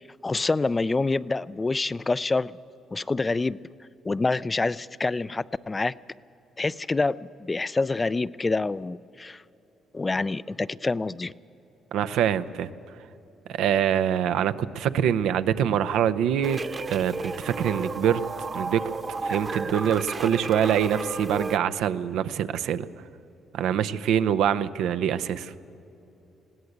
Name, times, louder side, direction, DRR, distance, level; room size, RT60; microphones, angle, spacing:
voice 1, 0.2-2.5 2.9-3.6 4.0-5.9 6.6-9.4 9.9-11.3, left 3 dB, 25° left, 18 dB, 0.4 m, -26 dB
voice 2, 11.9-13.0 13.5-16.6 16.9-18.9 19.2-22.9 23.5-25.5, right 9 dB, 85° right, 12 dB, 0.6 m, -25 dB
sound 1, 16.4-21.6, right 3 dB, 35° right, 1.0 m, -33 dB
20.5 x 16.5 x 8.0 m, 3.0 s
cardioid pair, 90°, 0 cm